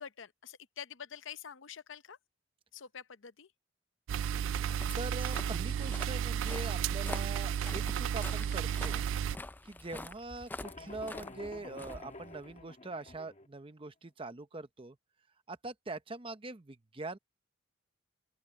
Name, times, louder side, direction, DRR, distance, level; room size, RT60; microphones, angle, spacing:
voice 1, 0.0-2.2 2.7-3.5, left 8 dB, 75° left, 0.8 m, -47 dB
sound 1, 4.1-9.4, right 8 dB, 80° right, 0.3 m, -33 dB
Walk footsteps, 4.4-12.6, left 2 dB, 10° left, 0.3 m, -47 dB
voice 2, 4.9-9.0 9.6-15.0 15.5-17.2, right 3 dB, 25° right, 0.8 m, -43 dB
sound 2, 10.6-13.5, left 2 dB, 35° left, 1.4 m, -50 dB
open air
head